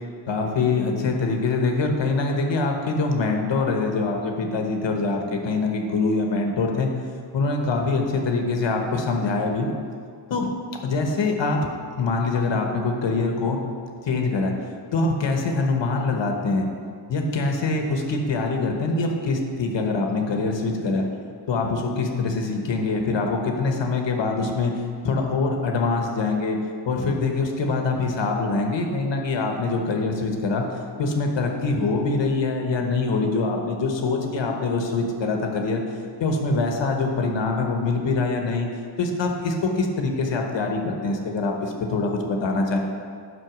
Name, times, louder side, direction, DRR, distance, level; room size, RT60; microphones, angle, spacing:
voice 1, 0.3-6.9 7.3-9.7 10.3-10.5 10.8-11.6 12.0-13.6 14.0-14.5 14.9-16.7 17.1-21.0 21.5-24.7 25.0-26.6 26.8-30.7 31.0-35.8 36.2-38.7 39.0-42.8, left 3 dB, 85° left, 2 dB, 1.3 m, -24 dB
8.0 x 6.0 x 6.0 m, 2.2 s
wide cardioid pair, 140°, 43 cm